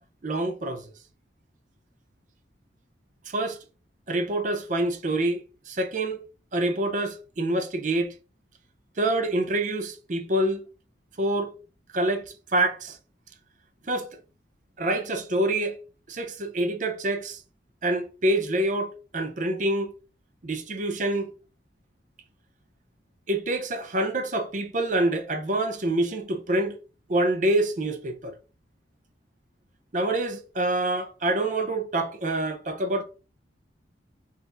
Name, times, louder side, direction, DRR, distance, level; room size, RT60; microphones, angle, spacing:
voice 1, 0.2-0.8 3.3-3.6 4.1-6.2 6.5-8.1 9.0-10.6 11.2-11.5 11.9-12.2 12.5-13.0 13.9-14.1 14.8-15.8 16.1-17.4 17.8-19.9 20.4-21.3 23.3-26.8 27.1-28.3 29.9-33.0, right 1 dB, 40° right, 0.6 m, -26 dB
4.9 x 2.5 x 3.8 m
head